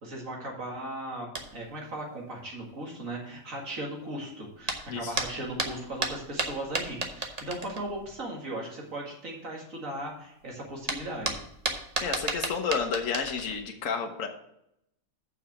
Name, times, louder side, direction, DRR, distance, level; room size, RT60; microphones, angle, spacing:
voice 1, 0.0-11.4, right 1 dB, 75° right, -1 dB, 2.5 m, -37 dB
sound 1, 1.3-1.7 4.6-8.1 10.4-10.5 10.7-13.6, right 3 dB, 30° right, 1.0 m, -33 dB
voice 2, 12.0-14.3, left 6 dB, 70° left, 4 dB, 1.4 m, -31 dB
7.1 x 5.8 x 7.0 m, 0.79 s
omnidirectional pair, 1.4 m